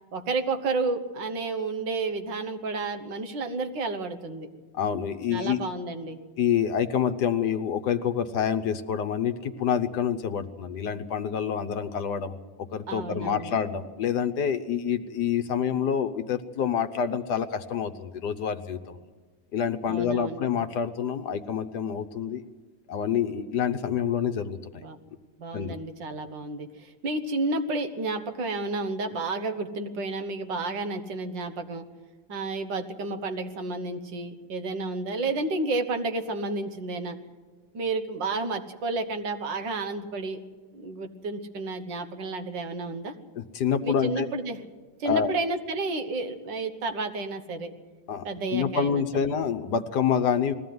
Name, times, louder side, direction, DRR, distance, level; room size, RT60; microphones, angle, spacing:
voice 1, 0.1-4.5 5.3-6.2 12.9-13.6 19.9-20.5 24.8-25.0 25.4-31.8 32.3-37.2 37.7-40.4 40.7-43.1 43.8-44.6 45.0-47.7 48.2-49.2, right 3 dB, 75° right, 7 dB, 2.0 m, -31 dB
voice 2, 4.7-5.6 6.4-12.4 12.7-19.0 19.5-22.4 22.9-24.6 25.5-25.7 43.4-44.3 45.0-45.3 48.1-48.2 48.5-50.6, left 7 dB, 65° left, 11 dB, 1.4 m, -27 dB
20.5 x 15.0 x 9.4 m, 1.4 s
omnidirectional pair, 2.0 m